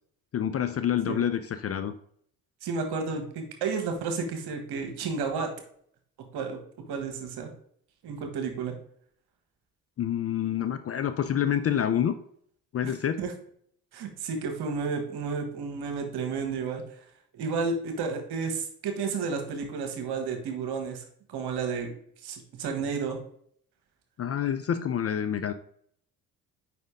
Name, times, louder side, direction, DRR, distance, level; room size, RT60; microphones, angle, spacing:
voice 1, 0.3-1.9 10.0-12.2 12.7-13.2 24.2-25.5, left 9 dB, 35° left, 11 dB, 0.5 m, -27 dB
voice 2, 2.6-5.5 6.3-6.6 6.9-7.5 8.0-8.7 12.8-13.3 13.9-16.8 17.3-21.0 21.3-21.9 22.2-23.2, right 5 dB, 65° right, 4 dB, 1.5 m, -31 dB
5.1 x 4.2 x 4.9 m, 0.63 s
hypercardioid pair, 50°, 42 cm